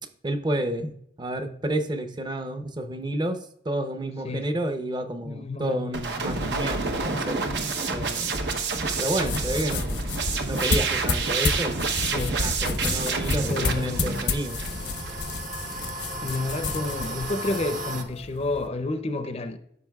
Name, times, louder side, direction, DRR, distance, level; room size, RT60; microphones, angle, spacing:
voice 1, 0.2-3.4 3.6-7.4 7.9-8.5 9.0-10.0 10.5-11.8 12.3-14.6, right 1 dB, 25° right, 0.7 m, -30 dB
voice 2, 5.2-5.8 12.1-12.4 13.5-14.2 16.2-19.6, left 2 dB, 35° left, 0.5 m, -30 dB
sound 1, 5.9-15.2, right 4 dB, 75° right, 0.9 m, -28 dB
sound 2, 9.0-18.7, left 3 dB, 80° left, 0.8 m, -31 dB
sound 3, 12.3-18.0, right 2 dB, 50° right, 1.1 m, -37 dB
13.5 x 6.0 x 2.3 m
head